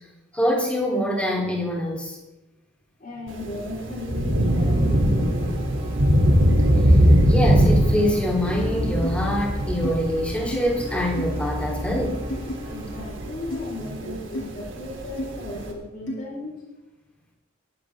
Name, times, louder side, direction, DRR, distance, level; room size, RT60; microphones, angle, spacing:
voice 1, 0.3-2.2 7.3-12.2, equal, 5° left, -2 dB, 4.2 m, -25 dB
voice 2, 3.0-5.7 12.6-16.6, left 1 dB, 40° left, -3 dB, 5.4 m, -35 dB
Thunder / Rain, 3.3-15.7, equal, 70° right, 3.7 m, -22 dB
sound 1, 4.4-13.1, equal, 25° right, 5.2 m, -33 dB
sound 2, 9.0-9.2 9.8-9.9 10.5-10.6 11.2-11.4 12.3-12.5 13.5-13.7 14.3-14.5 15.2-15.3 16.1-16.2, left 1 dB, 75° left, 3.7 m, -32 dB
20.5 x 15.5 x 3.9 m, 1.0 s
head